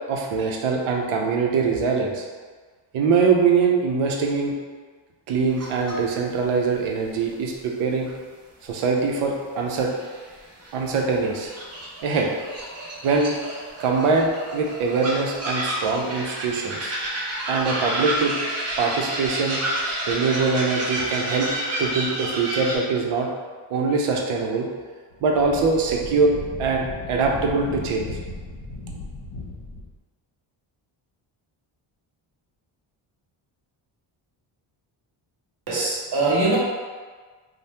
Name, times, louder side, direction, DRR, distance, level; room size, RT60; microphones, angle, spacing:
voice 1, 0.1-2.2 2.9-4.5 5.3-8.1 8.6-9.9 10.7-11.5 12.0-12.3 13.0-13.4 13.8-16.9 17.5-18.3 18.8-19.6 20.1-21.5 21.8-23.3 23.7-24.7 25.2-26.3 26.6-28.1, right 4 dB, 75° right, 0 dB, 0.7 m, -23 dB
sound 1, 5.6-5.9 6.3-6.4 8.1-8.2 8.7-8.8 9.9-10.7 11.0-22.8, right 1 dB, 30° right, 0.7 m, -30 dB
Wind, 25.1-29.9, left 2 dB, 50° left, 0.9 m, -36 dB
voice 2, 35.7-36.6, right 2 dB, 50° right, -5 dB, 1.0 m, -22 dB
2.7 x 2.2 x 3.3 m, 1.5 s
cardioid pair, 90°, 50 cm